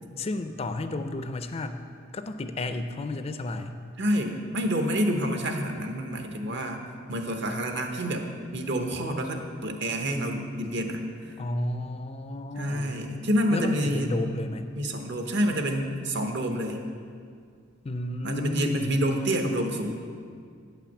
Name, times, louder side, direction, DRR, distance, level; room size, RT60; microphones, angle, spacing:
voice 1, 0.2-1.8 2.1-3.8 11.4-13.0 13.5-14.8 17.8-18.9, left 2 dB, 30° left, 8 dB, 0.4 m, -32 dB
voice 2, 4.0-6.8 7.1-8.3 8.5-11.3 12.6-14.1 14.8-16.8 18.2-20.0, equal, 60° right, 4 dB, 1.0 m, -28 dB
8.9 x 5.8 x 7.3 m, 2.2 s
head